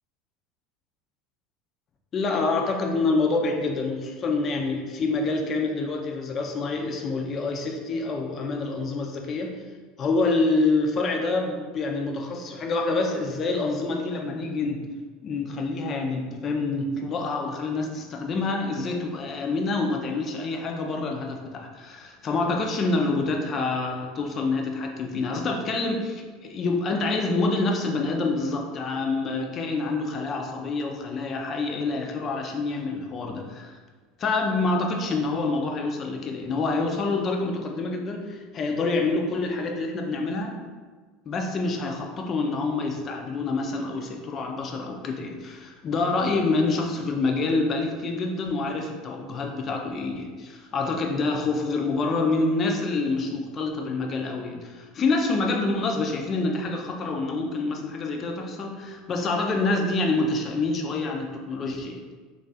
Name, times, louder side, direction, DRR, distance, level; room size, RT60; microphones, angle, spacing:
voice 1, 2.1-9.5 10.0-14.9 15.2-33.8 34.2-40.6 41.2-62.0, left 3 dB, 35° left, 2 dB, 0.5 m, -27 dB
3.2 x 2.4 x 4.0 m, 1.4 s
supercardioid pair, 120°, 0 cm